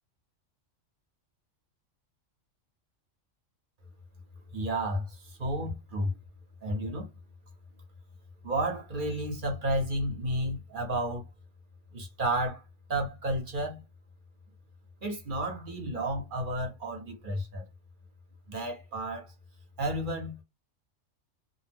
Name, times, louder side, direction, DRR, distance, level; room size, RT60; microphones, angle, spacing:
voice 1, 4.5-6.1 6.6-7.1 8.4-11.2 11.9-12.6 12.9-13.8 15.0-17.6 18.5-19.3 19.8-20.3, right 1 dB, 45° right, 0.9 m, -32 dB
2.4 x 2.1 x 3.3 m
omnidirectional pair, 1.3 m